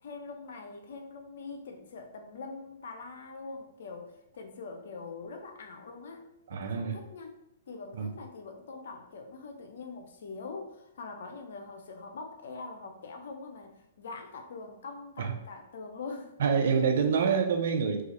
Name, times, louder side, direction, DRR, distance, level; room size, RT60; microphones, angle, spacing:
voice 1, 0.0-7.3 7.7-16.3, left 4 dB, 70° left, 4 dB, 0.6 m, -43 dB
voice 2, 6.5-6.9 7.9-8.1 15.2-15.3 16.4-18.0, right 6 dB, 70° right, 5 dB, 0.5 m, -26 dB
2.7 x 2.4 x 4.1 m, 0.88 s
hypercardioid pair, 125°, 0 cm